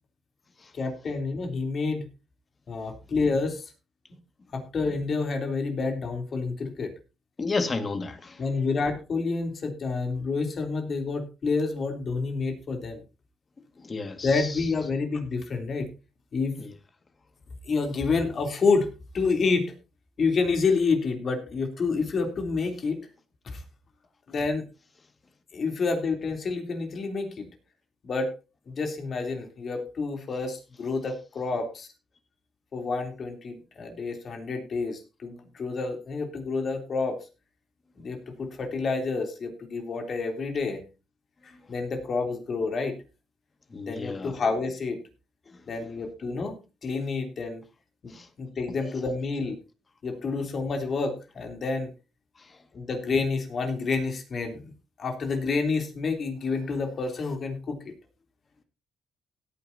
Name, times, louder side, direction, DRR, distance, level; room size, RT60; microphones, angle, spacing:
voice 1, 0.7-2.1 2.7-3.7 4.5-6.9 8.4-13.0 14.2-15.9 16.3-16.5 17.7-18.9 19.1-19.7 20.2-23.0 23.5-23.6 24.3-24.6 25.5-27.5 28.0-28.3 28.7-31.9 32.7-37.2 38.0-40.8 41.4-43.0 43.9-45.0 45.7-46.5 46.8-47.6 48.0-49.6 50.0-51.9 52.7-54.7 55.0-57.8, left 4 dB, 50° left, 3.3 m, -28 dB
voice 2, 7.4-8.4 13.8-14.5 16.6-16.7 43.7-44.3 48.1-48.3, left 3 dB, 35° left, 2.0 m, -31 dB
17.0 x 9.6 x 2.8 m
cardioid pair, 90°, 0 cm